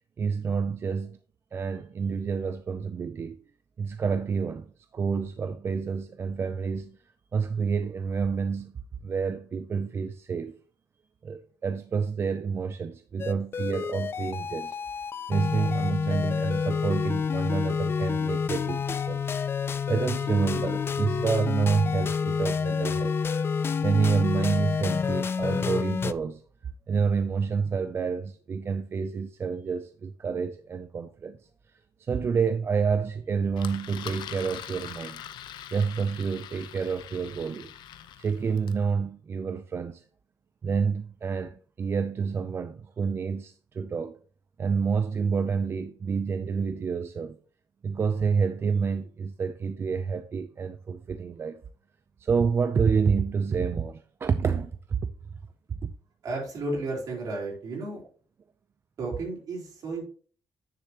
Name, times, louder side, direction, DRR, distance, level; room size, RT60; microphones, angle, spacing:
voice 1, 0.2-1.2 1.5-3.4 3.8-7.0 7.3-10.6 11.2-14.8 15.3-19.3 19.9-23.2 23.8-26.4 26.9-31.5 32.0-35.2 35.7-37.7 38.2-40.0 40.6-44.2 44.6-47.4 47.8-51.6 52.2-55.0 55.3-55.4 55.7-55.9, right 5 dB, 35° right, 0.4 m, -28 dB
sound 1, 13.2-26.1, left 6 dB, 30° left, 0.3 m, -28 dB
Engine, 33.6-38.8, left 10 dB, 90° left, 0.7 m, -43 dB
voice 2, 56.2-58.0 59.0-60.0, right 2 dB, 55° right, 4.1 m, -33 dB
9.8 x 6.7 x 2.9 m
cardioid pair, 150°, 7 cm